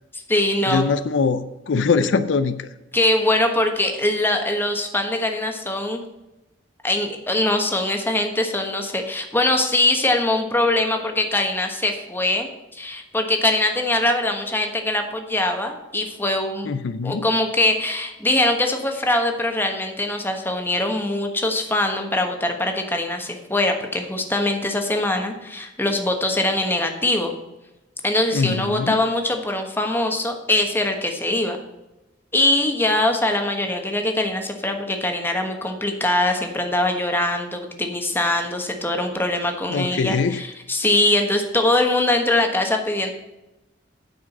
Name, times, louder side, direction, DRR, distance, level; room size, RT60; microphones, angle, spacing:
voice 1, 0.1-0.8 2.9-6.0 6.8-16.7 17.0-27.3 28.0-31.6 32.3-43.1, left 1 dB, 10° left, 4 dB, 1.3 m, -22 dB
voice 2, 0.7-2.7 16.6-17.3 28.3-29.0 39.7-40.4, left 4 dB, 75° left, 12 dB, 0.5 m, -22 dB
9.6 x 4.9 x 7.2 m, 0.99 s
head